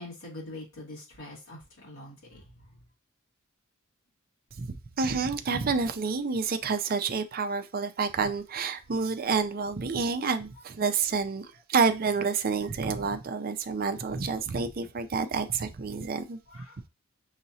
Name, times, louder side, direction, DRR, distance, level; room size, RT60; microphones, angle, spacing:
voice 1, 0.0-2.8 16.5-16.8, left 2 dB, 80° left, 2.4 m, -44 dB
voice 2, 4.6-16.4, right 5 dB, 45° right, 0.5 m, -29 dB
6.4 x 3.0 x 2.7 m
head